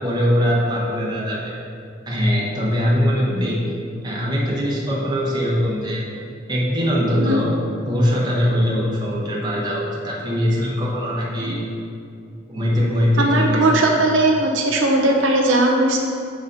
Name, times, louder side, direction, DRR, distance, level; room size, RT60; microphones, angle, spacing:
voice 1, 0.0-1.5 2.1-3.6 4.0-6.0 6.5-7.5 7.8-11.6 12.5-13.7, equal, 20° right, -5 dB, 1.1 m, -21 dB
voice 2, 13.2-16.0, right 2 dB, 85° right, 0 dB, 0.8 m, -18 dB
7.0 x 4.1 x 4.0 m, 2.4 s
head